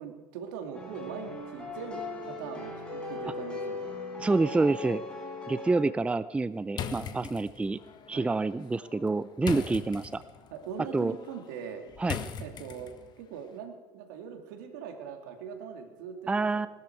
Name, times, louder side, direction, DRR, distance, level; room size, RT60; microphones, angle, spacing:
voice 1, 0.0-3.9 8.1-8.3 9.5-9.7 10.5-11.8 12.4-16.7, right 7 dB, 75° right, 5 dB, 2.4 m, -41 dB
sound 1, 0.7-5.8, left 2 dB, 10° left, 6.2 m, -38 dB
voice 2, 4.2-5.0 5.5-7.8 8.1-10.2 10.9-11.1 12.0-12.2 16.3-16.7, right 3 dB, 10° right, 16 dB, 0.5 m, -27 dB
sound 2, 6.7-13.2, left 7 dB, 45° left, 1.5 m, -41 dB
20.5 x 13.0 x 4.7 m, 1.2 s
hypercardioid pair, 85°, 10 cm